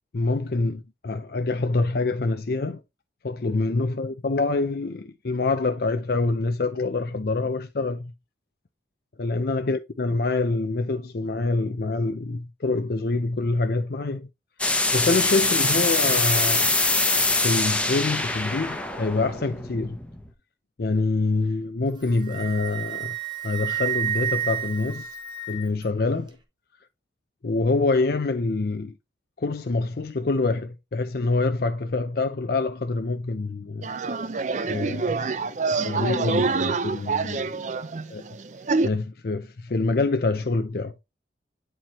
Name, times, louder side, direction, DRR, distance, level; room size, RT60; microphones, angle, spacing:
voice 1, 0.1-2.8 3.2-8.1 9.2-14.3 14.9-16.7 17.4-20.0 20.8-23.1 23.4-25.1 25.5-26.4 27.4-28.9 29.4-33.9 34.7-35.5 35.8-37.6 38.1-38.2 38.8-40.9, left 3 dB, 55° left, 0.5 m, -26 dB
sound 1, 14.6-20.3, left 2 dB, 5° left, 0.8 m, -24 dB
Wind instrument woodwind instrument, 21.9-25.8, right 10 dB, 25° right, 1.1 m, -30 dB
sound 2, 33.8-38.9, right 4 dB, 40° right, 0.5 m, -26 dB
8.9 x 4.5 x 3.0 m
head